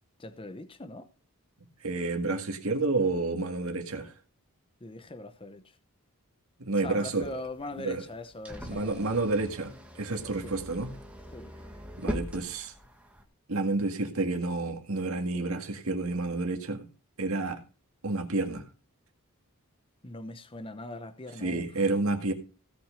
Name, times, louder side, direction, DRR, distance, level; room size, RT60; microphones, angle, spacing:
voice 1, 0.2-1.1 4.8-5.6 6.8-9.0 10.4-10.5 11.3-11.5 20.0-21.8, left 2 dB, 25° left, 0.8 m, -41 dB
voice 2, 1.8-4.1 6.6-7.3 7.8-8.0 8.6-9.7 10.0-10.9 12.0-12.7 13.5-16.8 17.2-17.6 18.0-18.6 21.4-22.3, right 3 dB, 70° right, 2.0 m, -29 dB
sound 1, 7.0-13.2, equal, 5° right, 1.6 m, -41 dB
16.5 x 6.0 x 5.0 m
head